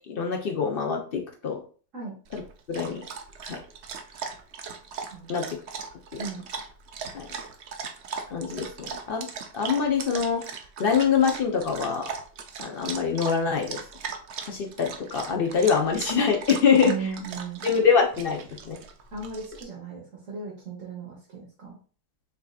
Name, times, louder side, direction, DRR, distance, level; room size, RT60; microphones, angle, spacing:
voice 1, 0.1-1.6 2.3-2.4 2.7-3.0 3.5-3.6 5.3-5.4 7.1-7.3 8.3-9.3 9.5-10.5 10.8-12.1 12.6-13.8 14.4-16.9 17.6-18.8, left 6 dB, 70° left, 2 dB, 0.5 m, -24 dB
Dog, 2.2-19.6, right 6 dB, 70° right, 0.6 m, -38 dB
voice 2, 5.1-5.4 6.2-6.4 16.8-17.7 19.1-21.8, right 5 dB, 50° right, -5 dB, 1.5 m, -36 dB
6.5 x 2.7 x 2.3 m, 0.39 s
omnidirectional pair, 1.8 m